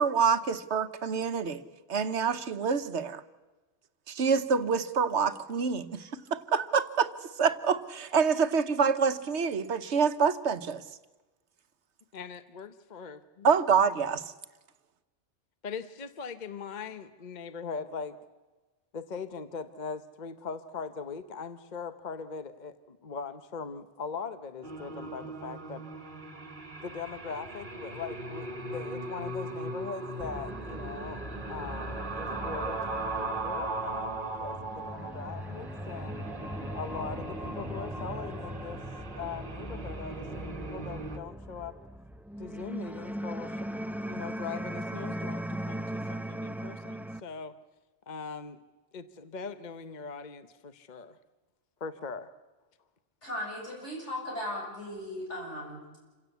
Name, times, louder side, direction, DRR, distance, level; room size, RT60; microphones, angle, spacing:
voice 1, 0.0-1.6 1.9-3.2 4.1-7.1 7.4-10.8 13.4-14.2, right 6 dB, 75° right, 11 dB, 1.3 m, -26 dB
voice 2, 12.1-13.5 15.6-18.2 18.9-25.8 26.8-31.2 31.5-36.2 36.7-38.8 39.2-41.7 42.4-47.5 48.1-48.6 48.9-51.2 51.8-52.3, left 5 dB, 45° left, 11 dB, 1.0 m, -41 dB
sound 1, 24.6-41.2, right 2 dB, 45° right, 1.5 m, -38 dB
sound 2, 30.2-47.2, equal, 5° right, 0.3 m, -39 dB
voice 3, 53.2-55.8, left 1 dB, 85° left, -1 dB, 7.5 m, -37 dB
27.0 x 16.5 x 8.2 m, 1.2 s
omnidirectional pair, 1.2 m